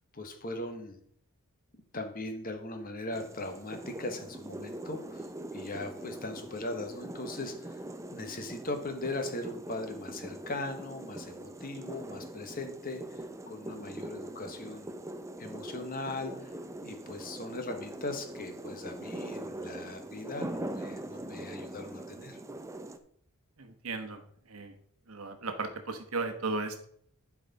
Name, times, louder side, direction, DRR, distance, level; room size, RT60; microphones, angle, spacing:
voice 1, 0.1-1.0 1.9-7.8 8.1-14.9 15.4-16.6 16.8-22.4, left 2 dB, 40° left, 6 dB, 1.2 m, -39 dB
sound 1, 3.1-23.0, right 1 dB, 15° right, 0.5 m, -42 dB
voice 2, 23.6-24.2 24.5-24.7 25.1-26.9, right 3 dB, 70° right, 6 dB, 1.1 m, -35 dB
11.5 x 4.8 x 4.1 m, 0.64 s
head